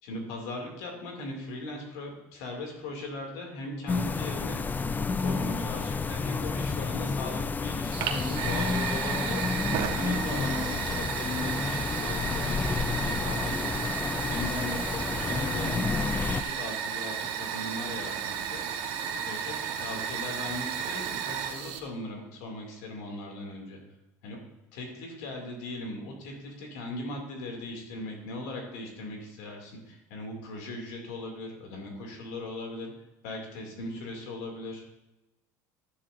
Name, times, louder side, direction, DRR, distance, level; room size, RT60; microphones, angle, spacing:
voice 1, 0.0-4.6 5.2-9.4 9.9-13.8 14.3-18.8 19.2-23.8 24.2-24.4 24.8-32.9 33.2-34.8, left 2 dB, 80° left, 1 dB, 2.5 m, -38 dB
sound 1, 3.9-16.4, left 4 dB, 20° left, 0.5 m, -30 dB
Fire, 7.9-21.8, right 7 dB, 65° right, 1.1 m, -33 dB
11.0 x 10.0 x 2.6 m, 0.99 s
supercardioid pair, 90°, 9 cm